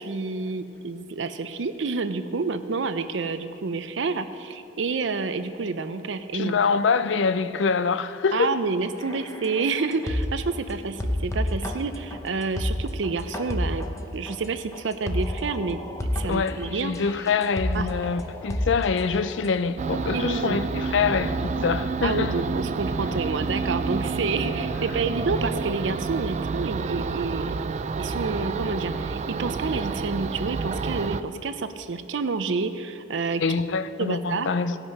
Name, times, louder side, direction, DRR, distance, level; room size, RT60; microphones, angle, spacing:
voice 1, 0.0-6.6 8.3-13.9 14.1-16.9 17.7-17.9 20.1-20.6 22.0-27.5 28.0-33.4 34.0-34.5, right 4 dB, 90° right, 0.6 m, -29 dB
voice 2, 6.3-8.6 16.2-22.4 33.4-34.8, left 5 dB, 90° left, 0.5 m, -25 dB
sound 1, 9.0-10.6 11.0-19.5, left 1 dB, 15° left, 0.7 m, -30 dB
distant nature noise, 19.8-31.2, right 4 dB, 40° right, 0.3 m, -29 dB
17.0 x 6.0 x 5.4 m
head